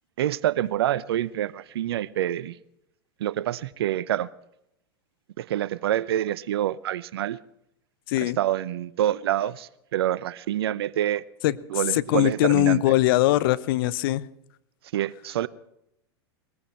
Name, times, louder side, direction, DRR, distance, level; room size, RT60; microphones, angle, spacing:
voice 1, 0.2-2.6 3.2-4.3 5.4-7.4 8.2-11.2 11.7-13.0 14.9-15.5, right 12 dB, 65° right, 0.7 m, -27 dB
voice 2, 11.9-14.2, left 15 dB, 55° left, 0.8 m, -21 dB
20.5 x 15.0 x 4.4 m
hypercardioid pair, 100°, 14 cm